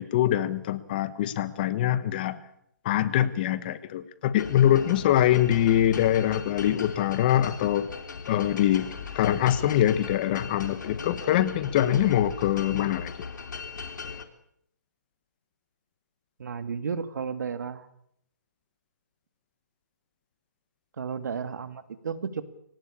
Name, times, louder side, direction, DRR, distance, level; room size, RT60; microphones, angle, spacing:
voice 1, 0.0-2.4 2.8-7.9 8.3-13.3, left 11 dB, 30° left, 15 dB, 1.1 m, -24 dB
sound 1, 4.4-14.2, left 5 dB, 70° left, 3.5 m, -39 dB
voice 2, 16.4-17.9 21.0-22.4, right 6 dB, 65° right, 12 dB, 2.2 m, -33 dB
22.5 x 19.0 x 8.6 m, 0.71 s
hypercardioid pair, 165°, 10 cm